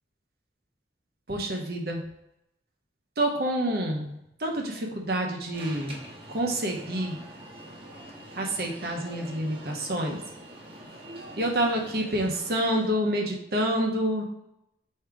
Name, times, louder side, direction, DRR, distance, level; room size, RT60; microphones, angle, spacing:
voice 1, 1.3-2.0 3.2-6.0 6.3-7.2 8.3-10.2 11.4-14.2, right 1 dB, 60° right, 1 dB, 0.8 m, -28 dB
Alarm, 5.5-12.9, right 1 dB, 35° right, 1.0 m, -45 dB
3.5 x 2.8 x 4.6 m, 0.85 s
head